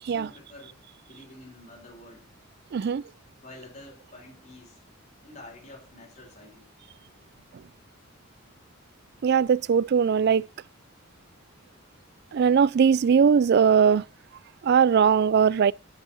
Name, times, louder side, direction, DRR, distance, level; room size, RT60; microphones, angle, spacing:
voice 1, 0.0-2.3 2.8-2.9 3.4-4.8 5.2-6.7, left 2 dB, 35° left, 4.2 m, -48 dB
voice 2, 2.7-3.0 9.2-10.4 12.3-14.0 14.6-15.7, right 6 dB, 50° right, 0.3 m, -20 dB
9.0 x 7.3 x 4.3 m
head